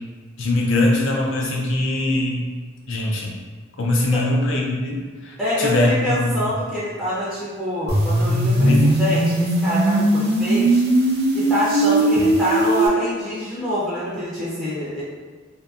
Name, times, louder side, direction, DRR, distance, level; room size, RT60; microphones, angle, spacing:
voice 1, 0.4-2.5 2.9-3.3 3.8-6.3 8.6-8.9 12.2-12.3, left 2 dB, 65° left, -1 dB, 0.6 m, -21 dB
voice 2, 5.4-10.8 11.3-15.0, equal, 5° left, -11 dB, 0.5 m, -25 dB
sound 1, 7.9-12.9, right 1 dB, 55° right, 0.6 m, -19 dB
2.6 x 2.6 x 2.4 m, 1.5 s
head